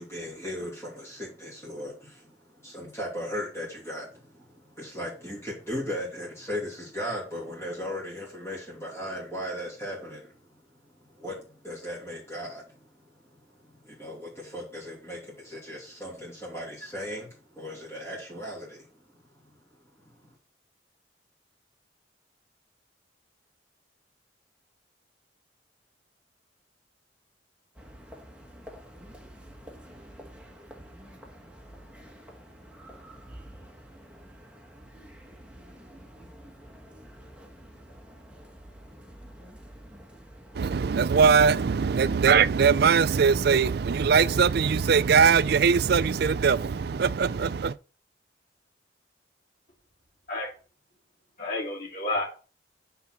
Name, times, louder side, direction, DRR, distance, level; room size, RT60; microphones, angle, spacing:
voice 1, 0.0-18.9 20.0-20.3, equal, 15° left, 2.8 m, -37 dB
sound 1, 27.7-42.4, equal, 5° right, 1.4 m, -48 dB
voice 2, 40.5-47.8, right 6 dB, 60° right, 0.4 m, -21 dB
voice 3, 51.4-52.2, left 2 dB, 45° left, 3.0 m, -30 dB
9.4 x 4.2 x 6.2 m
head